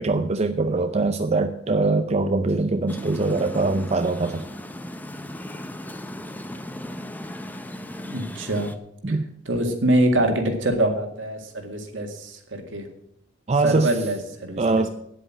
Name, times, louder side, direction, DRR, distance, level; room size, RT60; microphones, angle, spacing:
voice 1, 0.0-4.5 9.0-9.3 13.5-13.9 14.6-14.9, right 3 dB, 35° right, 7 dB, 0.5 m, -22 dB
sound 1, 2.9-8.8, left 1 dB, 10° left, 0.6 m, -36 dB
voice 2, 8.0-8.7 9.1-9.2 9.5-12.9 13.6-14.6, right 1 dB, 65° right, 4 dB, 2.0 m, -24 dB
9.8 x 8.0 x 7.5 m, 0.75 s
head